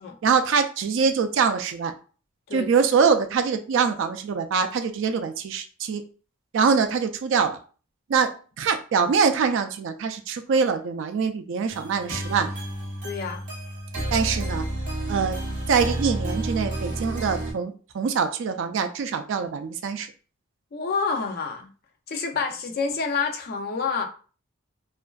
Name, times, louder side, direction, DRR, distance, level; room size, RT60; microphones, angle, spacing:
voice 1, 0.2-1.9 2.5-6.0 6.5-7.6 8.1-12.5 14.1-14.7 15.1-15.4 15.7-20.1, right 5 dB, 60° right, 7 dB, 0.3 m, -24 dB
sound 1, 11.7-17.5, right 1 dB, 40° right, 0.7 m, -30 dB
voice 2, 13.0-13.4 20.7-21.7 22.1-24.0, left 5 dB, 50° left, 4 dB, 0.4 m, -28 dB
2.5 x 2.2 x 2.3 m, 0.38 s
head